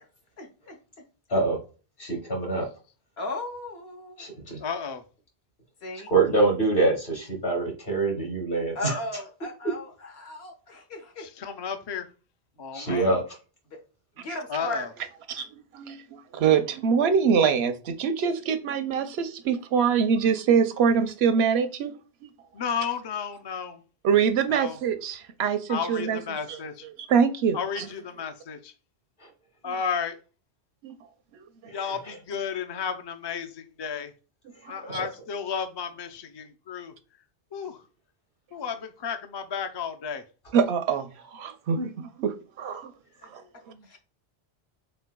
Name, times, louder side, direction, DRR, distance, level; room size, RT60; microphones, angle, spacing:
voice 1, 0.4-0.8 3.2-4.3 5.8-6.1 8.8-9.9 10.2-11.3 12.9-13.0 13.7-13.8 14.2-14.9 43.2-43.3 43.8-44.0, left 2 dB, 80° left, 1.2 m, -36 dB
voice 2, 2.0-2.7 4.2-4.6 6.1-9.2 12.7-13.2 29.2-29.3 31.7-32.2 34.5-34.7 34.9-35.0 41.7-41.9 43.7-44.0, right 3 dB, 60° left, 1.8 m, -26 dB
voice 3, 4.6-5.0 11.2-12.1 12.6-13.1 14.5-14.9 22.5-23.8 24.5-24.8 25.7-26.9 27.5-28.7 29.6-30.2 31.7-34.1 34.7-36.9 37.5-37.8 38.5-40.2, left 6 dB, 40° left, 0.3 m, -33 dB
voice 4, 15.7-21.9 24.0-26.2 26.5-26.6 27.1-27.9 30.8-30.9 34.9-35.0 40.5-41.8 42.2-42.9 43.3-43.4, right 6 dB, 90° right, 0.9 m, -24 dB
4.4 x 4.1 x 2.2 m
omnidirectional pair, 1.0 m